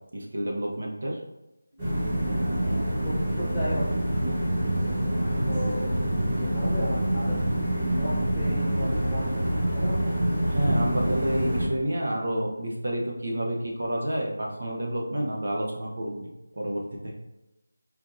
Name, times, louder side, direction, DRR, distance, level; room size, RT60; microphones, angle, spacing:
voice 1, 0.1-1.2 10.4-16.3 16.6-17.1, right 1 dB, 60° right, -1 dB, 0.9 m, -29 dB
sound 1, 1.8-11.7, right 1 dB, 10° right, 1.1 m, -26 dB
voice 2, 3.0-7.4 8.0-10.0, left 1 dB, 10° left, -11 dB, 0.5 m, -35 dB
4.3 x 2.7 x 2.6 m, 0.97 s
figure-of-eight pair, 175°, 0 cm